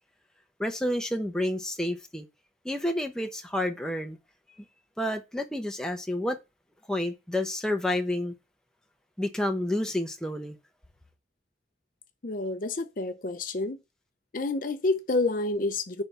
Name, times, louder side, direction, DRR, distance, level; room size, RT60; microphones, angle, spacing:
voice 1, 0.6-2.3 2.6-4.2 5.0-6.4 6.9-8.3 9.2-10.6, left 1 dB, 5° left, 0.8 m, -29 dB
voice 2, 12.2-13.8 14.3-16.0, left 2 dB, 50° left, 0.6 m, -29 dB
9.4 x 3.6 x 5.7 m
head